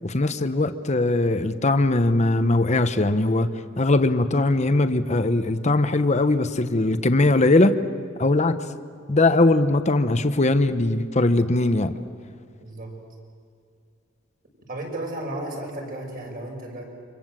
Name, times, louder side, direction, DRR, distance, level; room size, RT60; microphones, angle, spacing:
voice 1, 0.0-3.5 3.8-7.8 8.2-8.6 9.1-11.9, left 2 dB, 35° left, 10 dB, 1.0 m, -20 dB
voice 2, 12.6-13.0 14.7-16.8, right 1 dB, 50° right, 1 dB, 6.1 m, -33 dB
29.5 x 25.5 x 7.6 m, 2.2 s
head